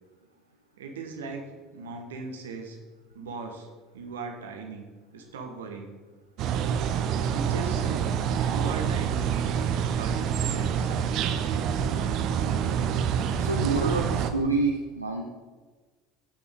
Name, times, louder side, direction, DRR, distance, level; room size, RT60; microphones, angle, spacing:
voice 1, 0.8-2.8 3.1-3.7 3.9-4.8 5.1-5.9 7.3-8.1 8.5-9.3 9.9-10.9, right 4 dB, 70° right, 3 dB, 1.5 m, -38 dB
sound 1, 6.4-14.3, right 8 dB, 50° right, 0.8 m, -27 dB
voice 2, 12.9-15.2, right 3 dB, 90° right, 1 dB, 0.6 m, -28 dB
16.5 x 6.0 x 3.7 m, 1.4 s
figure-of-eight pair, 70°, 0 cm